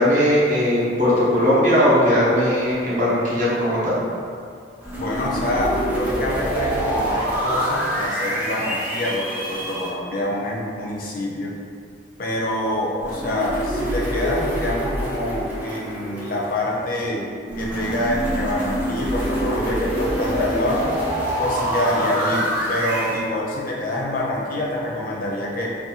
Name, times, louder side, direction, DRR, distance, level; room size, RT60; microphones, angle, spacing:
voice 1, 0.0-4.0, equal, 45° right, -8 dB, 0.7 m, -18 dB
sound 1, 4.8-9.9 13.0-16.8 17.5-23.2, equal, 10° right, 0.4 m, -25 dB
voice 2, 4.9-11.5 12.2-17.3 17.6-21.0 21.4-25.7, left 1 dB, 50° left, -3 dB, 0.5 m, -26 dB
2.5 x 2.2 x 2.8 m, 2.2 s
head